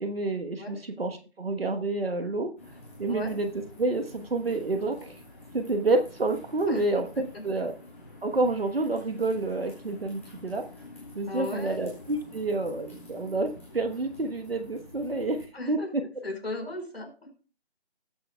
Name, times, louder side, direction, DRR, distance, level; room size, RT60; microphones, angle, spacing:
voice 1, 0.0-2.5 3.0-3.5 3.8-5.2 5.5-7.7 8.2-10.6 11.1-15.8, right 2 dB, 60° right, 5 dB, 1.2 m, -29 dB
sound 1, 2.6-15.5, left 2 dB, 10° left, 1.7 m, -49 dB
voice 2, 11.3-11.9 15.5-15.9 16.2-17.3, left 2 dB, 65° left, 2 dB, 4.7 m, -36 dB
19.0 x 6.9 x 2.3 m, 0.36 s
figure-of-eight pair, 175°, 33 cm